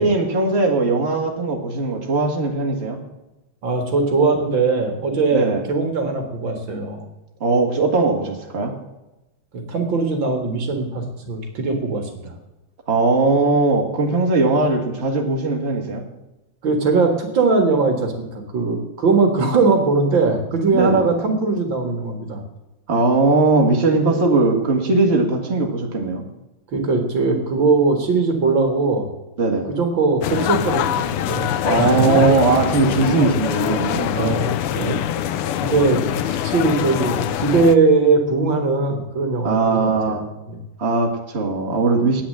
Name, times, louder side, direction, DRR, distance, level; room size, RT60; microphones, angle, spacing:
voice 1, 0.0-3.0 5.3-5.6 7.4-8.7 12.9-16.0 20.7-21.1 22.9-26.2 29.4-29.7 31.6-34.4 39.4-40.3 40.8-42.2, right 3 dB, 30° right, 1 dB, 2.1 m, -19 dB
voice 2, 3.6-7.0 9.5-12.3 16.6-18.3 18.5-22.4 24.0-24.2 26.7-29.1 29.7-31.5 31.8-32.2 34.1-35.0 35.6-40.2 40.5-40.6, right 3 dB, 60° right, 5 dB, 2.4 m, -20 dB
sound 1, 30.2-37.8, left 10 dB, 90° left, 1.6 m, -23 dB
10.0 x 9.2 x 7.6 m, 1.0 s
omnidirectional pair, 2.4 m